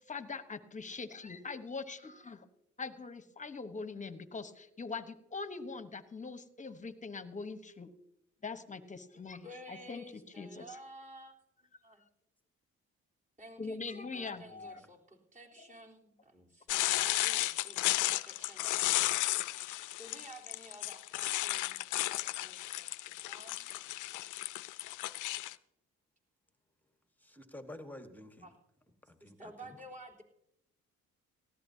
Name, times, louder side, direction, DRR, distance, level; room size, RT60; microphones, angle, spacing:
voice 1, 0.1-2.5 2.8-7.9 8.4-10.0 10.4-10.8 13.6-14.8 15.6-15.7, left 4 dB, 25° left, 11 dB, 1.1 m, -42 dB
voice 2, 9.4-11.3 11.8-12.0 13.4-17.9 18.2-23.6 28.4-28.6 29.2-30.2, equal, 25° right, -1 dB, 3.7 m, -53 dB
voice 3, 14.5-14.9 27.2-28.5 29.0-29.3 29.6-29.8, left 1 dB, 5° left, 7 dB, 1.4 m, -50 dB
sound 1, 16.7-25.5, left 17 dB, 85° left, 0.5 m, -34 dB
18.5 x 14.5 x 2.8 m, 0.80 s
cardioid pair, 90°, 30 cm